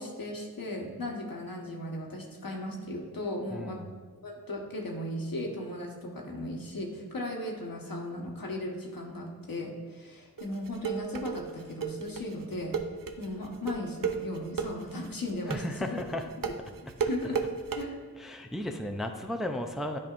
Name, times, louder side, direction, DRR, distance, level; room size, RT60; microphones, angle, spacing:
voice 1, 0.0-3.8 4.2-16.0 16.4-16.5 17.1-17.4 17.7-18.0, left 1 dB, 70° left, 0 dB, 1.3 m, -37 dB
voice 2, 3.5-3.9 15.5-16.3 16.9-17.0 18.2-20.0, left 1 dB, ahead, 4 dB, 0.5 m, -35 dB
sound 1, 10.4-17.8, right 6 dB, 65° right, 0.6 m, -33 dB
9.5 x 5.2 x 2.5 m, 1.5 s
cardioid pair, 45°, 36 cm